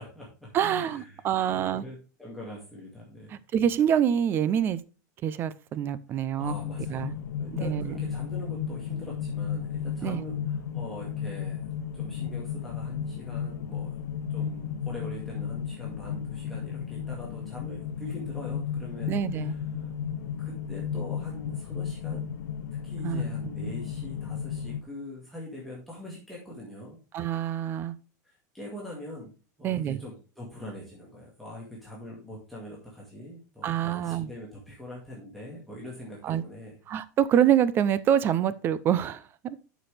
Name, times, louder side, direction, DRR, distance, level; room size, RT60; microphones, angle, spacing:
voice 1, 0.0-3.4 6.1-11.6 11.9-14.0 14.3-19.9 20.4-22.3 22.8-27.0 28.2-29.3 29.6-36.8, left 1 dB, ahead, 2.1 m, -43 dB
voice 2, 0.5-1.9 3.3-4.8 5.2-6.5 6.9-7.1 7.5-8.0 10.0-10.3 19.1-19.5 23.0-23.2 23.6-23.7 27.1-28.0 29.6-30.0 33.6-34.3 36.2-36.4 36.9-39.5, right 9 dB, 20° right, 0.5 m, -26 dB
sound 1, 6.4-24.8, left 8 dB, 85° left, 0.9 m, -34 dB
11.0 x 6.2 x 3.4 m
supercardioid pair, 165°, 10 cm